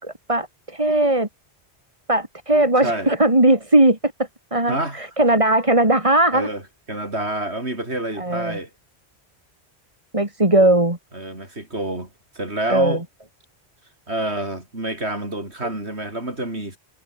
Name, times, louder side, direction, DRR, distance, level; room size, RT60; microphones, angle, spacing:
voice 1, 0.0-1.3 2.1-4.1 4.5-6.5 8.2-8.6 10.1-11.0 12.7-13.0, right 1 dB, 30° right, 3.4 m, -18 dB
voice 2, 4.7-5.0 6.3-6.6 6.9-8.7 11.1-12.1 12.3-13.0 14.1-16.8, right 1 dB, 80° right, 6.8 m, -27 dB
omnidirectional pair, 1.1 m